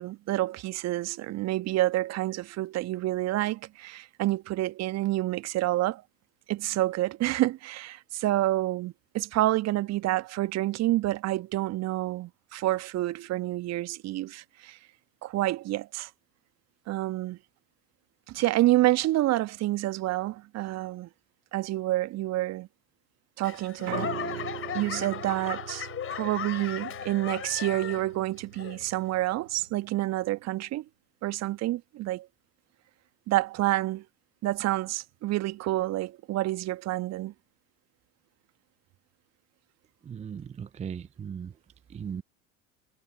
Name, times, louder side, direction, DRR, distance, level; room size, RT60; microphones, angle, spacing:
voice 1, 0.0-6.0 6.5-14.8 15.2-16.1 16.9-17.4 18.3-21.1 21.5-22.7 23.4-24.4 24.7-30.8 31.2-32.3 33.3-34.0 34.4-37.3, right 16 dB, 35° right, 1.5 m, -28 dB
Laughter / Clapping / Crowd, 23.4-28.2 28.5-29.1 29.6-29.7, left 9 dB, 30° left, 4.9 m, -37 dB
Piano, 23.9-30.0, right 8 dB, 75° right, 2.0 m, -41 dB
voice 2, 40.1-41.5 41.9-42.2, right 7 dB, 15° right, 0.7 m, -37 dB
figure-of-eight pair, 75°, 43 cm